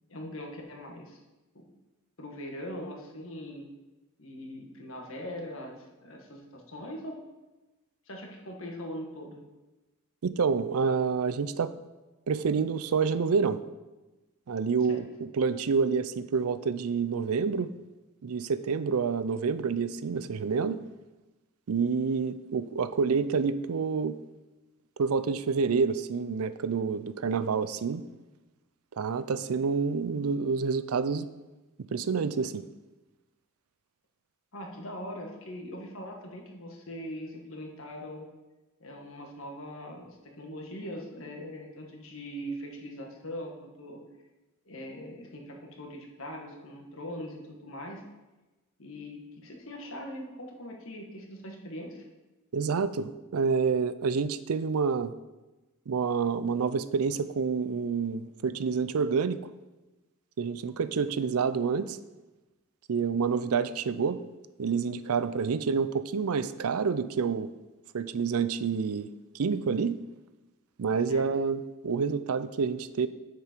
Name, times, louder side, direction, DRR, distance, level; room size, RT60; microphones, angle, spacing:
voice 1, 0.1-1.2 1.5-1.7 2.2-3.7 4.2-7.2 8.1-9.4 14.9-15.0 34.5-38.3 38.8-44.0 44.6-48.0 48.8-52.1 71.0-71.2, equal, 65° left, 1 dB, 1.7 m, -41 dB
voice 2, 10.2-11.7 12.3-13.6 14.5-17.7 18.2-20.8 21.7-24.2 25.0-28.0 29.0-31.3 31.9-32.6 52.5-55.1 55.9-59.4 60.4-62.0 62.9-64.2 64.6-67.5 67.9-69.1 69.3-70.0 70.8-73.1, right 5 dB, 80° right, 14 dB, 0.5 m, -28 dB
8.3 x 7.8 x 4.5 m, 1.1 s
head